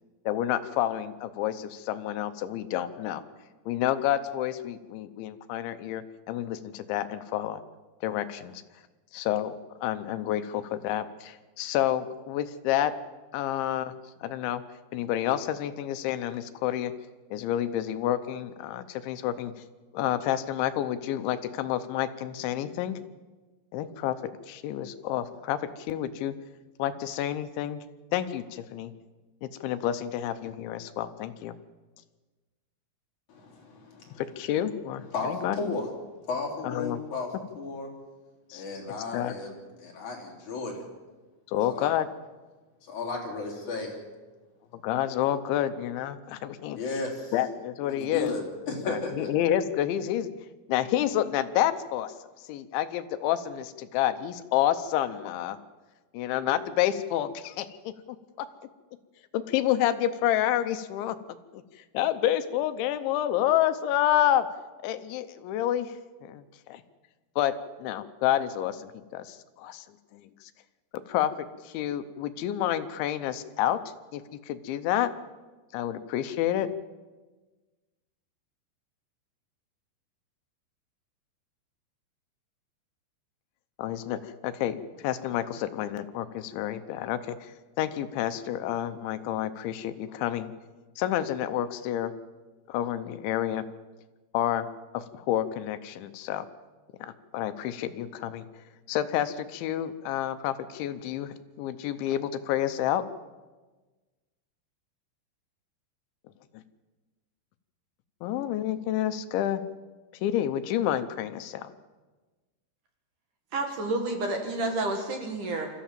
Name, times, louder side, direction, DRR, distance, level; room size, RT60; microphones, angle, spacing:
voice 1, 0.3-3.2 3.7-7.6 8.0-8.6 9.1-9.5 9.8-12.9 13.3-13.9 14.2-14.6 14.9-16.9 17.3-19.5 19.9-23.0 23.7-26.4 26.8-27.8 28.1-28.9 29.4-31.5 34.2-35.7 36.6-37.0 38.5-38.6 39.1-39.3 41.5-42.1 44.7-46.8 47.3-48.3 48.8-50.3 50.7-52.1 52.5-55.6 56.1-58.5 59.3-61.2 61.5-64.5 64.8-66.8 67.4-69.9 70.1-70.5 71.1-71.3 71.6-73.8 74.1-75.1 75.7-76.7 83.8-90.5 91.0-92.1 92.7-93.6 94.3-94.7 94.9-96.5 97.0-98.5 98.9-103.0 106.5-106.6 108.2-109.6 110.2-111.7, left 11 dB, 80° left, 11 dB, 3.1 m, -29 dB
voice 2, 33.3-34.2 35.1-35.9 36.3-37.3 37.6-37.9 38.5-40.8 41.7-41.9 42.8-44.0 46.8-47.3 47.9-49.3, left 3 dB, 40° left, -1 dB, 4.5 m, -34 dB
voice 3, 113.5-115.7, right 2 dB, 55° right, 3 dB, 2.6 m, -30 dB
24.5 x 14.0 x 7.5 m, 1.3 s
omnidirectional pair, 5.5 m